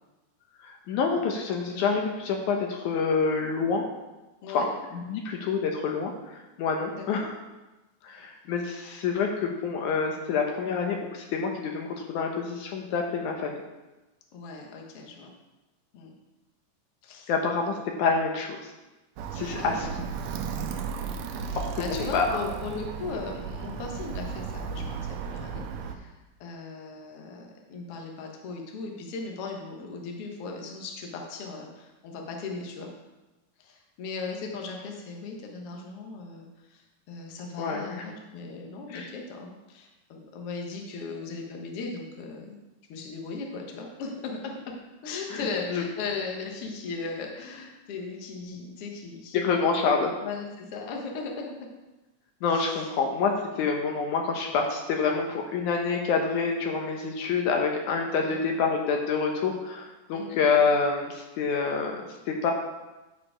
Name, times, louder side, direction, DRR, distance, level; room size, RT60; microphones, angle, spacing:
voice 1, 0.6-3.9 4.5-4.7 4.9-6.1 6.6-7.3 8.0-13.6 17.3-17.7 18.0-18.7 19.3-19.9 21.6-22.4 37.6-38.0 38.9-39.1 45.3-45.5 45.7-45.8 49.3-50.1 52.4-62.5, left 5 dB, 75° left, 2 dB, 2.2 m, -27 dB
voice 2, 4.4-4.7 6.9-7.0 14.3-15.3 15.9-16.1 17.0-17.3 17.7-17.8 19.6-19.9 21.4-32.9 33.6-42.6 42.9-44.7 45.0-49.6 50.2-51.5 52.5-52.9 53.5-53.7 58.2-58.4 60.1-60.4, left 4 dB, 55° left, 1 dB, 1.8 m, -38 dB
Alarm, 19.2-26.0, right 6 dB, 80° right, 2.1 m, -35 dB
11.5 x 4.9 x 4.9 m, 1.1 s
omnidirectional pair, 3.7 m